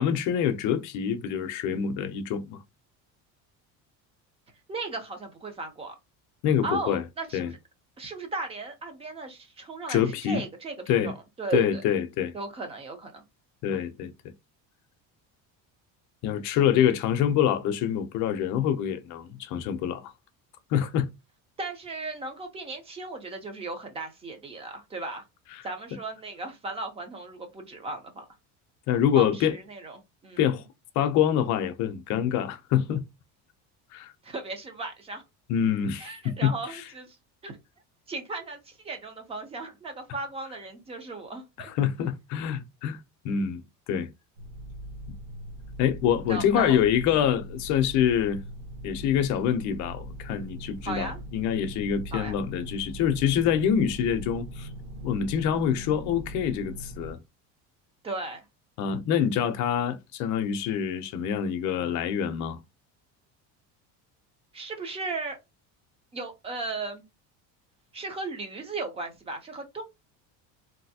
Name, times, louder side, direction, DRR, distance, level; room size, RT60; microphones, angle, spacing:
voice 1, 0.0-2.6 6.4-7.0 7.3-7.5 9.9-10.4 10.9-11.1 11.5-12.3 13.6-14.1 16.2-20.1 20.7-21.1 25.5-25.6 28.9-29.5 30.4-30.6 31.0-33.0 33.9-34.1 35.5-36.8 41.6-43.0 43.2-43.6 43.9-44.1 45.8-48.4 48.8-54.7 55.0-57.2 58.8-62.6, left 9 dB, 50° left, 0.6 m, -26 dB
voice 2, 4.7-6.0 6.6-7.6 8.0-11.8 12.3-13.2 21.6-25.2 25.6-28.3 29.1-30.4 34.2-35.2 36.0-37.2 37.4-37.6 38.1-41.7 46.3-46.8 47.1-47.3 50.8-51.2 52.1-52.4 58.0-58.4 64.5-65.4 66.1-67.0 67.9-69.8, right 3 dB, 15° right, 0.5 m, -36 dB
sound 1, 44.4-57.1, right 1 dB, 30° right, 0.9 m, -41 dB
3.3 x 2.6 x 2.7 m
cardioid pair, 180°, 37 cm